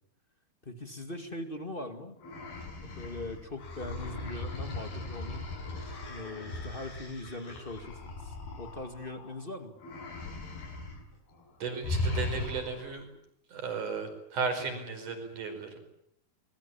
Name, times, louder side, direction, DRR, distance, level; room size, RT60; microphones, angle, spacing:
voice 1, 0.6-2.2 2.8-5.5 6.0-9.7 14.7-14.8, left 2 dB, 25° left, 6 dB, 1.1 m, -41 dB
sound 1, 2.2-9.4 9.8-11.0 11.3-11.5 11.8-13.0, left 2 dB, 70° left, 7.8 m, -38 dB
voice 2, 11.6-13.1 13.5-15.8, right 5 dB, 50° right, 6 dB, 6.3 m, -35 dB
25.0 x 21.0 x 8.6 m, 0.76 s
omnidirectional pair, 4.6 m